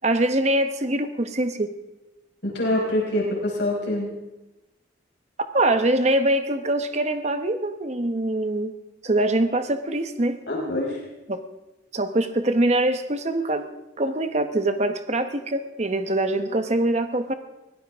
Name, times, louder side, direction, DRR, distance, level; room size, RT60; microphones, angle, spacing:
voice 1, 0.0-1.7 5.5-8.7 9.0-10.4 11.3-11.4 11.9-13.7 14.0-17.3, right 1 dB, 35° right, 8 dB, 1.0 m, -23 dB
voice 2, 2.4-4.1 10.5-11.0, left 1 dB, 65° left, -2 dB, 4.9 m, -25 dB
23.0 x 17.5 x 3.6 m, 1.0 s
head